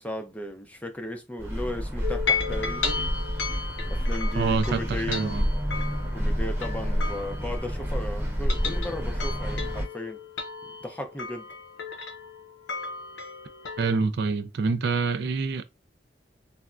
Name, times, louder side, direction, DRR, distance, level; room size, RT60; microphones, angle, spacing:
voice 1, 0.0-3.0 3.8-5.3 6.1-10.2 10.8-11.5, left 1 dB, 10° left, 0.5 m, -35 dB
sound 1, 1.4-9.9, equal, 10° right, 0.9 m, -29 dB
sound 2, 2.0-8.0 8.3-14.0, left 5 dB, 85° left, 0.6 m, -34 dB
voice 2, 4.3-5.4 13.8-15.6, right 4 dB, 60° right, 0.4 m, -26 dB
3.4 x 2.0 x 2.4 m
head